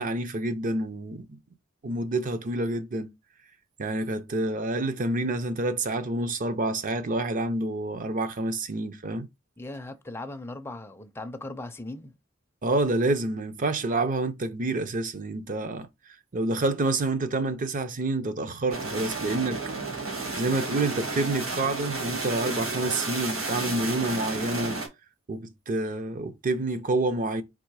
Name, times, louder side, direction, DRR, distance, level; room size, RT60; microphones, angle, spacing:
voice 1, 0.0-1.4 1.8-3.1 3.8-9.3 12.6-15.9 16.3-19.6 20.4-24.8 25.3-27.4, right 2 dB, 40° right, 0.6 m, -28 dB
voice 2, 9.6-12.1, left 2 dB, 10° left, 0.5 m, -38 dB
sound 1, 18.7-24.9, right 3 dB, 80° right, 1.9 m, -32 dB
3.7 x 2.8 x 4.6 m
head